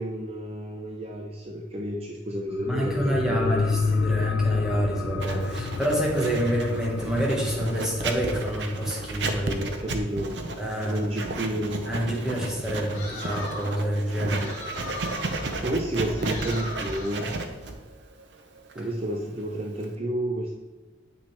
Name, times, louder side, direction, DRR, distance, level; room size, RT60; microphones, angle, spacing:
voice 1, 0.0-3.8 9.8-10.4 10.8-11.9 14.2-14.6 15.6-17.3 18.8-20.5, right 1 dB, 35° right, 0 dB, 0.6 m, -31 dB
sound 1, 2.5-11.6 11.9-12.0, left 4 dB, 80° left, 0.4 m, -30 dB
voice 2, 2.6-9.7 10.6-11.0 11.9-14.5, right 1 dB, 5° right, -3 dB, 1.4 m, -27 dB
Writing, 5.2-19.9, right 2 dB, 65° right, 0.7 m, -33 dB
sound 2, 12.9-13.8 14.3-15.6 16.2-17.3, left 1 dB, 40° left, 2.5 m, -38 dB
8.5 x 5.9 x 3.3 m, 1.3 s
head